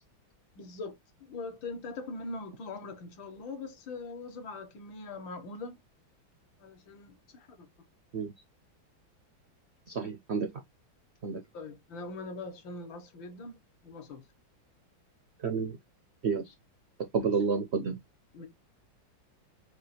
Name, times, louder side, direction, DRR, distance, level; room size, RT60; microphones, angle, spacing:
voice 1, 0.6-5.8 6.6-7.7 11.5-14.2 17.1-17.3 18.3-18.5, left 3 dB, 70° left, 1.8 m, -42 dB
voice 2, 9.9-10.5 11.2-11.4 15.4-15.8 16.2-16.4 17.1-18.0, right 5 dB, 75° right, 0.6 m, -29 dB
4.8 x 2.3 x 4.1 m
omnidirectional pair, 2.1 m